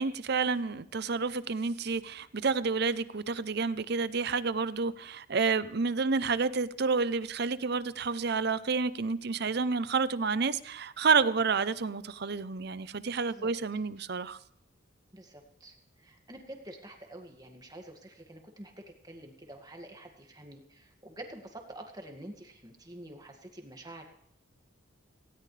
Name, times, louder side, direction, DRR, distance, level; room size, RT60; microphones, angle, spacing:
voice 1, 0.0-14.4, right 4 dB, 50° right, 15 dB, 0.6 m, -29 dB
voice 2, 15.1-24.0, right 1 dB, 20° right, 3 dB, 2.1 m, -47 dB
18.5 x 17.0 x 3.4 m, 0.73 s
head